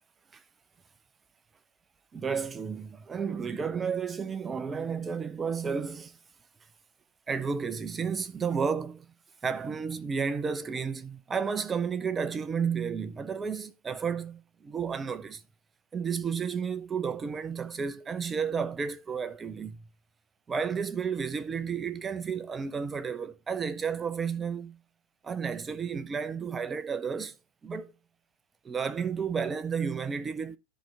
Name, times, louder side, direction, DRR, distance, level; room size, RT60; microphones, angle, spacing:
voice 1, 2.1-6.2 7.3-9.1 9.4-15.4 15.9-19.8 20.5-24.8 25.2-27.4 27.6-27.9 28.6-30.6, right 6 dB, 15° right, 0.7 m, -32 dB
13.0 x 4.5 x 4.8 m
figure-of-eight pair, 90°, 0 cm